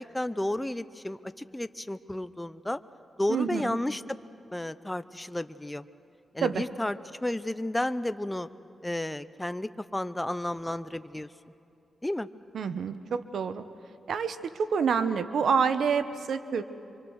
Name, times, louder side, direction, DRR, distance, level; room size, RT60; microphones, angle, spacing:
voice 1, 0.0-2.8 3.2-4.0 4.5-5.8 6.3-8.5 8.8-11.3 12.0-12.3, left 1 dB, 10° left, 12 dB, 0.7 m, -32 dB
voice 2, 3.3-3.8 6.4-6.6 12.5-13.6 14.1-16.6, right 6 dB, 80° right, 11 dB, 1.0 m, -27 dB
25.5 x 24.5 x 6.5 m, 2.7 s
cardioid pair, 70°, 0 cm